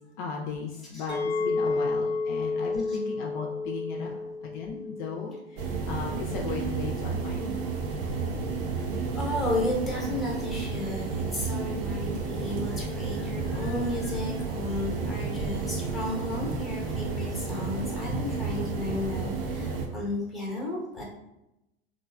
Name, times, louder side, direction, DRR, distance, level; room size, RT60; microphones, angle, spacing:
voice 1, 0.0-4.1 4.4-7.7, left 5 dB, 45° left, 0 dB, 0.4 m, -36 dB
Chink clink, 1.1-6.3, left 3 dB, 85° right, 1.3 m, -31 dB
voice 2, 4.0-4.3 9.1-21.0, left 1 dB, ahead, -3 dB, 0.8 m, -33 dB
sound 1, 5.6-19.9, right 4 dB, 55° right, 0.6 m, -32 dB
3.0 x 2.5 x 2.2 m, 0.91 s
figure-of-eight pair, 90°, 33 cm